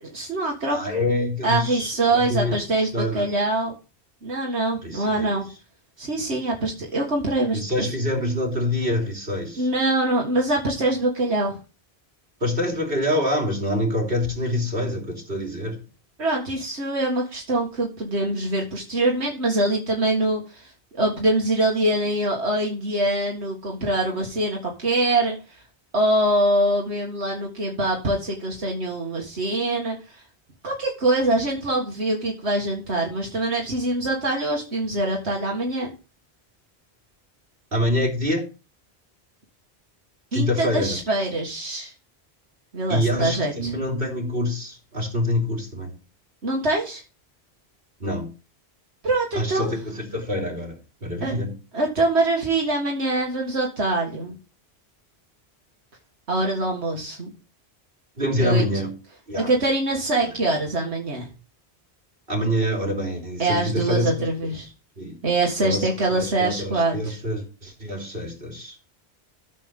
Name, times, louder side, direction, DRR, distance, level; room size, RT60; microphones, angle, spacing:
voice 1, 0.0-0.8 1.4-3.7 4.2-5.5 6.0-7.9 9.6-11.6 16.2-25.4 25.9-30.0 30.6-35.9 40.3-41.9 42.7-43.7 46.4-47.0 49.0-49.7 51.2-51.4 51.7-54.3 56.3-57.3 58.4-58.6 59.3-61.2 63.4-64.7 65.2-67.2, right 2 dB, 85° right, 2.2 m, -24 dB
voice 2, 0.7-2.6 2.9-3.3 4.8-5.3 7.5-9.7 12.4-15.8 37.7-38.4 40.3-41.2 42.9-45.9 48.0-48.3 49.3-51.5 58.2-58.9 59.3-59.5 62.3-64.5 65.0-65.2 65.6-68.8, left 1 dB, 60° right, 3.3 m, -26 dB
13.5 x 7.5 x 3.7 m
omnidirectional pair, 1.1 m